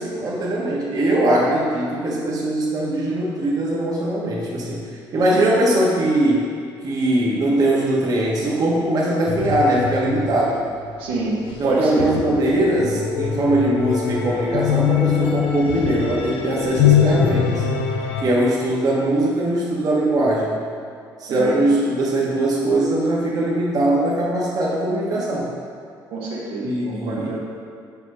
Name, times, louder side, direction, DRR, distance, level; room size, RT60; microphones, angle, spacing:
voice 1, 0.0-4.8 5.1-6.4 6.8-10.6 11.6-17.6 18.2-20.6 21.2-25.5 26.6-27.4, right 1 dB, 45° right, -4 dB, 1.2 m, -21 dB
sound 1, 9.3-18.2, left 8 dB, 85° left, 0.7 m, -23 dB
voice 2, 11.0-12.1 21.3-21.7 26.1-27.4, right 2 dB, 85° right, -5 dB, 1.6 m, -26 dB
6.0 x 4.6 x 5.4 m, 2.3 s
cardioid pair, 105°, 9 cm